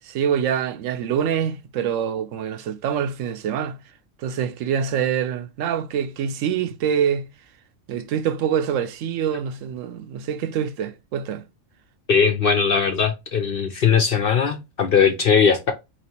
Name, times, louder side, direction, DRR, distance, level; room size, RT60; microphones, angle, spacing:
voice 1, 0.1-3.8 4.2-7.2 7.9-11.4, right 8 dB, 75° right, 0.9 m, -25 dB
voice 2, 12.1-15.7, left 6 dB, 55° left, 0.6 m, -19 dB
4.5 x 2.9 x 2.9 m
omnidirectional pair, 1.4 m